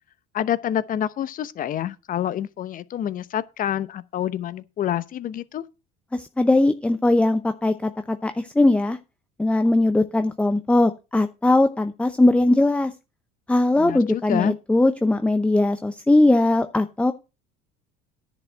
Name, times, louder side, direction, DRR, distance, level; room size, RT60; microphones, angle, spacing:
voice 1, 0.3-5.6 13.8-14.6, left 10 dB, 45° left, 0.9 m, -27 dB
voice 2, 6.1-9.0 9.4-12.9 13.5-17.1, left 2 dB, 5° left, 0.7 m, -20 dB
10.5 x 5.3 x 7.7 m
supercardioid pair, 105°, 20 cm